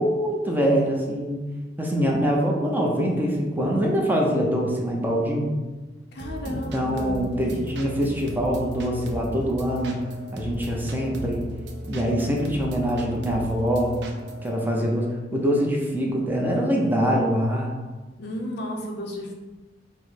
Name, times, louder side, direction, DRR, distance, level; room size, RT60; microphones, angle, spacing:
voice 1, 0.0-1.4 1.8-5.5 6.5-10.0 10.3-11.4 11.9-14.0 14.4-17.7, equal, 10° right, -1 dB, 0.6 m, -24 dB
voice 2, 6.1-7.2 8.0-8.1 18.2-19.3, left 1 dB, 60° left, 2 dB, 0.6 m, -33 dB
sound 1, 6.2-14.5, equal, 65° right, 0.6 m, -37 dB
4.8 x 2.1 x 4.1 m, 1.2 s
head